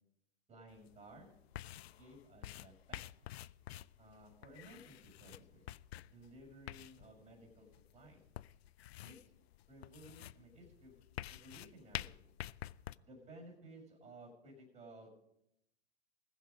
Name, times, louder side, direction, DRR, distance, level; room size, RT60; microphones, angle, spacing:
voice 1, 0.5-1.3 1.9-3.0 4.0-5.6 6.1-7.7 7.9-8.2 9.0-9.2 9.7-11.0 11.3-12.1 13.0-15.1, right 1 dB, 20° right, 1 dB, 6.2 m, -56 dB
sound 1, 0.7-12.9, left 13 dB, 70° left, 0.5 m, -49 dB
20.5 x 7.5 x 5.2 m, 0.80 s
hypercardioid pair, 120°, 32 cm